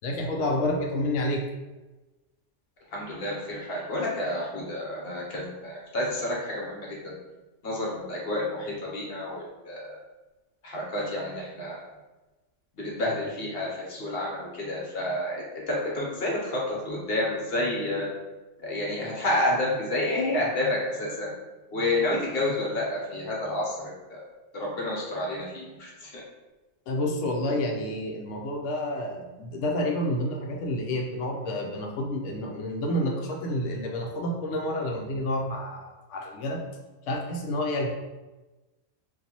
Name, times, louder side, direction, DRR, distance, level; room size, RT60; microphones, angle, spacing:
voice 1, 0.0-1.4 26.9-36.6 37.1-37.9, left 1 dB, 80° left, 0 dB, 0.9 m, -29 dB
voice 2, 2.9-7.1 7.6-10.0 10.6-11.8 12.8-18.1 18.6-21.3 21.7-24.2 24.5-26.2, left 1 dB, 55° left, -4 dB, 1.1 m, -30 dB
3.9 x 2.6 x 2.9 m, 1.1 s
omnidirectional pair, 1.3 m